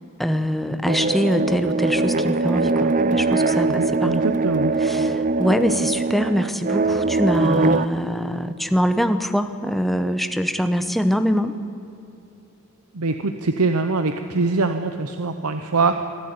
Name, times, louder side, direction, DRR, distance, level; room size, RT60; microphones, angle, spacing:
voice 1, 0.2-4.2 4.8-11.5, equal, ahead, 9 dB, 0.9 m, -23 dB
sound 1, 0.9-7.9, right 3 dB, 35° right, 0.5 m, -22 dB
voice 2, 3.7-4.7 12.9-16.1, right 3 dB, 90° right, 8 dB, 1.0 m, -23 dB
24.0 x 13.0 x 9.5 m, 3.0 s
head